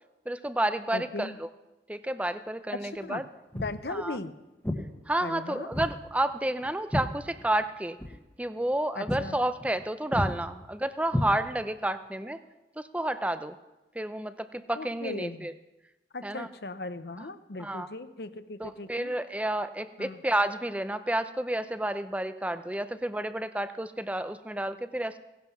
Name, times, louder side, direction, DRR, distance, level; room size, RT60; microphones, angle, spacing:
voice 1, 0.3-1.5 1.9-3.2 3.9-4.2 5.1-8.0 8.4-12.4 12.8-13.6 13.9-15.5 16.2-16.5 17.2-17.3 17.6-17.9 18.6-25.2, right 1 dB, 5° right, 12 dB, 0.5 m, -30 dB
voice 2, 0.9-1.4 2.8-3.2 3.5-4.3 5.2-5.7 9.0-9.4 14.7-15.5 16.1-19.1 20.0-20.2, left 2 dB, 60° left, 13 dB, 0.8 m, -38 dB
Walk footsteps, 3.5-3.8 4.6-4.9 5.7-6.0 6.3-7.7 8.0-8.2 8.6-8.8 9.1-9.3 9.6-9.8 10.1-10.4 11.1-11.8, left 1 dB, 10° left, 1.3 m, -32 dB
17.5 x 11.0 x 5.8 m, 1.1 s
head